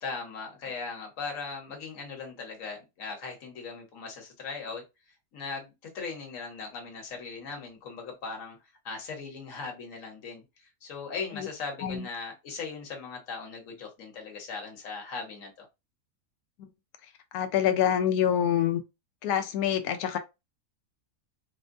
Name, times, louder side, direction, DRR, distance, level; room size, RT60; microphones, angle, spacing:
voice 1, 0.0-4.8 5.3-8.6 8.8-10.4 10.8-15.7, left 4 dB, 60° left, 1.4 m, -39 dB
voice 2, 17.3-18.8 19.2-20.2, left 9 dB, 75° left, 1.1 m, -26 dB
4.3 x 2.2 x 2.6 m
omnidirectional pair, 1.6 m